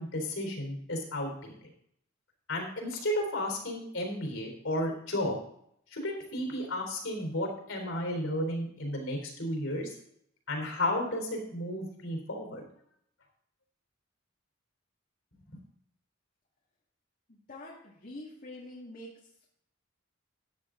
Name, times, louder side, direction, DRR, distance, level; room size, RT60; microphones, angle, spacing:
voice 1, 0.0-1.5 2.5-5.4 5.9-9.9 10.5-12.6 15.5-15.6, left 1 dB, 70° left, 2 dB, 3.7 m, -33 dB
voice 2, 17.3-19.1, left 1 dB, 45° left, -5 dB, 2.2 m, -45 dB
13.5 x 9.6 x 3.8 m, 0.70 s
head